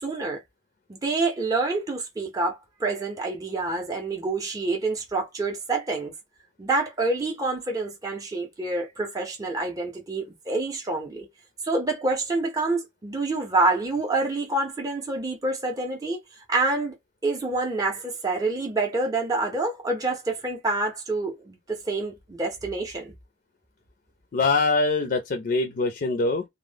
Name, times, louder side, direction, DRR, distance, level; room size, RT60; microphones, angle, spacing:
voice 1, 0.0-0.4 0.9-6.1 6.6-11.3 11.6-16.2 16.5-17.0 17.2-23.1, right 2 dB, 20° right, 0.5 m, -27 dB
voice 2, 24.3-26.4, left 3 dB, 50° left, 0.4 m, -23 dB
2.0 x 2.0 x 3.2 m
head